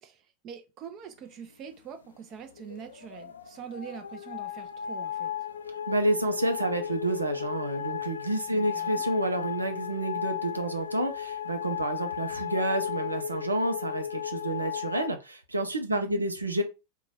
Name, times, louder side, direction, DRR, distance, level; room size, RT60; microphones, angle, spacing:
voice 1, 0.0-5.3 8.5-9.1 15.9-16.2, right 8 dB, 35° right, 0.6 m, -44 dB
sound 1, 2.6-15.1, left 9 dB, 70° left, 0.3 m, -35 dB
voice 2, 5.9-16.6, right 1 dB, 80° right, 0.6 m, -29 dB
2.9 x 2.3 x 4.0 m
figure-of-eight pair, 90°, 0 cm